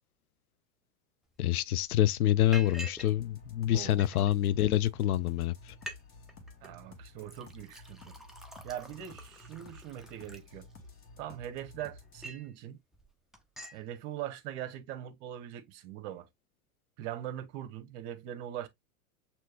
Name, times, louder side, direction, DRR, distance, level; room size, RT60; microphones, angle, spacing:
voice 1, 1.4-5.7, left 13 dB, 80° left, 0.5 m, -27 dB
Liquid, 1.4-1.5 1.8-2.0 2.5-3.1 3.4-4.3 5.0-5.1 5.4-5.5 5.7-6.0 6.3-6.7 7.2-11.0 11.5-12.5 12.9-13.1 13.3-13.8, right 1 dB, ahead, 0.5 m, -47 dB
sound 1, 3.0-12.3, left 1 dB, 30° left, 1.4 m, -52 dB
voice 2, 3.7-4.1 6.6-8.1 8.6-10.7 11.2-12.8 13.7-16.3 17.0-18.7, right 11 dB, 50° right, 1.1 m, -41 dB
6.1 x 2.8 x 2.4 m
hypercardioid pair, 105°, 44 cm